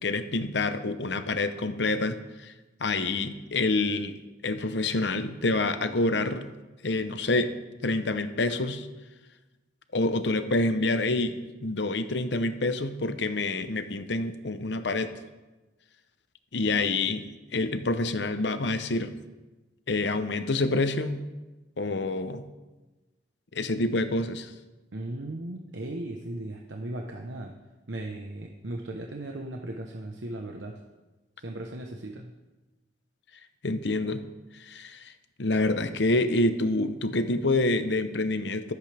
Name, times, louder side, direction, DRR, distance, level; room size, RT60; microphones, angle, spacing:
voice 1, 0.0-2.5 2.8-6.5 6.8-7.5 7.8-8.9 9.9-15.1 16.5-19.1 19.9-21.2 21.8-22.4 23.5-24.5 33.6-34.2 34.6-35.1 35.4-38.7, left 2 dB, 70° left, 10 dB, 0.9 m, -27 dB
voice 2, 24.9-27.5 27.9-30.8 31.4-32.3, right 1 dB, 90° right, 2 dB, 1.0 m, -37 dB
24.5 x 8.2 x 3.5 m, 1.1 s
head